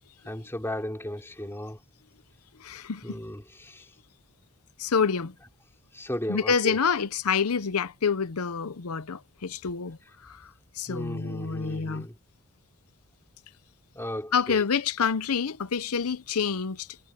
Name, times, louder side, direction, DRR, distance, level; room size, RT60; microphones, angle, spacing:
voice 1, 0.3-1.8 3.0-3.8 5.9-6.8 10.9-12.1 14.0-14.6, left 1 dB, 10° left, 3.6 m, -35 dB
voice 2, 2.6-3.2 4.8-5.3 6.3-12.1 14.3-17.0, left 6 dB, 90° left, 0.7 m, -28 dB
head